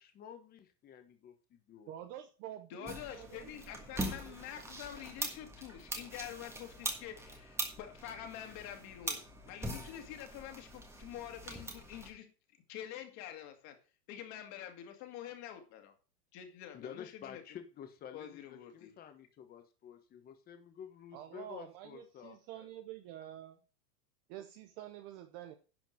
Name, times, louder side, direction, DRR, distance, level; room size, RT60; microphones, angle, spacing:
voice 1, 0.0-1.9 16.7-22.7, left 8 dB, 20° left, 1.4 m, -51 dB
voice 2, 1.9-3.4 3.9-4.4 21.1-23.6 24.3-25.5, right 12 dB, 25° right, 0.6 m, -48 dB
voice 3, 2.7-12.3 12.7-13.8 14.1-15.9 16.3-17.4 18.1-18.9, left 10 dB, 35° left, 2.2 m, -47 dB
sound 1, 2.8-12.1, right 1 dB, 5° right, 1.5 m, -42 dB
11.0 x 5.1 x 6.4 m
supercardioid pair, 155°, 47 cm